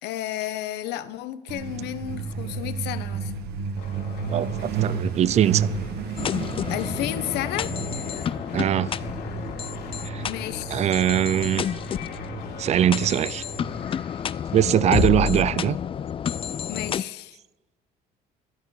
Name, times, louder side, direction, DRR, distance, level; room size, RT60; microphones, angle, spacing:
voice 1, 0.0-3.3 6.7-7.7 8.1-8.5 10.2-10.9 16.7-17.4, left 13 dB, 85° left, 0.8 m, -32 dB
Truck, 1.5-13.8, right 6 dB, 70° right, 1.4 m, -33 dB
sound 1, 3.7-14.8, left 6 dB, 70° left, 2.3 m, -43 dB
voice 2, 4.3-5.7 8.5-8.9 10.0-10.2 10.7-11.7 12.6-13.4 14.5-15.8, right 10 dB, 40° right, 0.4 m, -22 dB
sound 2, 6.2-17.0, left 8 dB, 30° left, 0.4 m, -30 dB
13.5 x 13.0 x 4.8 m
cardioid pair, 110°, 17 cm